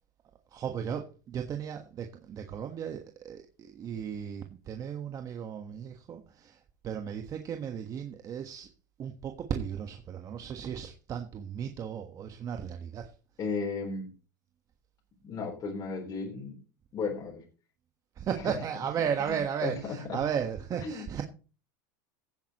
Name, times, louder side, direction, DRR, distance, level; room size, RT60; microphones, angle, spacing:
voice 1, 0.5-8.7 9.0-13.1 18.2-21.2, right 8 dB, 30° right, 1.4 m, -35 dB
voice 2, 13.4-14.1 15.2-16.6 16.9-17.4 18.4-18.6 19.3-20.2 20.8-21.1, left 4 dB, 35° left, 3.7 m, -35 dB
16.0 x 8.9 x 3.0 m
supercardioid pair, 120°, 11 cm